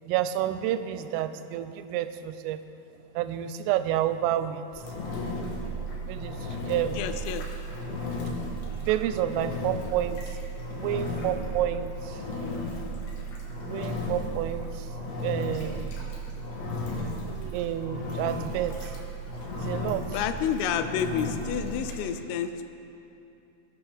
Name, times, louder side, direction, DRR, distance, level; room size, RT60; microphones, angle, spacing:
voice 1, 0.1-2.6 3.1-4.8 6.1-7.0 7.3-7.4 8.8-10.3 10.8-12.2 13.6-14.9 15.2-15.9 17.3-18.9 19.5-20.2, right 11 dB, 85° right, 11 dB, 3.1 m, -30 dB
Engine, 4.7-22.0, equal, 65° left, 3.5 m, -34 dB
voice 2, 7.0-7.4 20.1-22.6, left 8 dB, 90° left, 9 dB, 3.3 m, -29 dB
21.0 x 8.7 x 3.4 m, 2.8 s
omnidirectional pair, 5.7 m